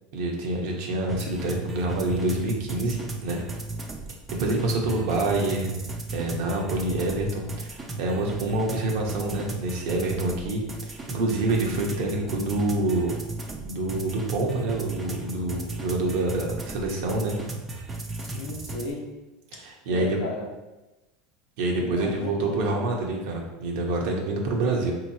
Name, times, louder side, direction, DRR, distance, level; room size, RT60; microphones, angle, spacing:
voice 1, 0.1-3.0 3.2-3.4 4.3-5.8 6.1-13.1 13.5-17.4 19.5-20.2 21.6-24.9, right 2 dB, 65° right, 0 dB, 0.8 m, -27 dB
sound 1, 1.1-18.9, right 2 dB, 20° right, 0.4 m, -36 dB
voice 2, 18.2-19.2 19.5-19.6 19.9-20.5 21.7-22.8, left 3 dB, 70° left, 1 dB, 0.7 m, -35 dB
3.8 x 2.9 x 2.7 m, 1.1 s
supercardioid pair, 130°, 0 cm